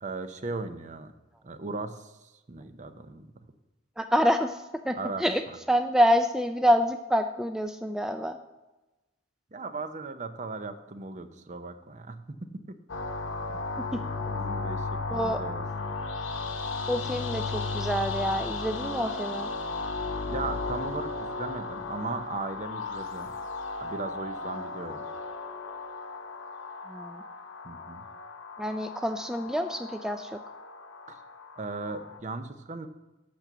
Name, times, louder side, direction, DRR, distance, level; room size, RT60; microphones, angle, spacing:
voice 1, 0.0-1.1 1.4-3.3 4.9-5.6 9.5-12.8 13.5-13.6 14.3-15.6 20.2-23.3 23.8-25.0 27.6-28.1 31.1-31.2 31.6-32.9, right 3 dB, 40° right, 9 dB, 0.6 m, -37 dB
voice 2, 4.0-5.4 5.7-8.4 13.9-14.0 15.1-15.4 16.9-19.5 26.9-27.2 28.6-30.4, equal, 5° right, 6 dB, 0.3 m, -27 dB
sound 1, 12.9-32.2, left 3 dB, 80° left, 0.9 m, -35 dB
8.6 x 6.0 x 6.8 m, 1.1 s
head